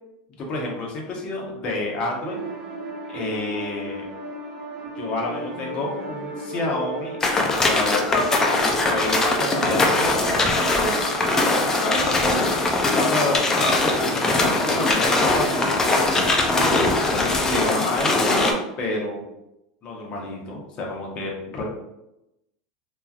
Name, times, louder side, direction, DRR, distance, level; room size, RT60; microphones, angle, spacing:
voice 1, 0.4-2.4 3.1-4.1 5.0-7.2 7.6-8.0 8.4-11.1 11.8-12.5 12.9-16.1 17.0-18.4 18.8-19.2 19.8-21.6, left 2 dB, 35° left, -1 dB, 0.8 m, -29 dB
sound 1, 2.2-12.4, right 2 dB, 40° right, 0.8 m, -34 dB
sound 2, 7.2-18.5, left 2 dB, 15° left, 0.3 m, -21 dB
3.0 x 2.4 x 2.3 m, 0.90 s
supercardioid pair, 140°, 3 cm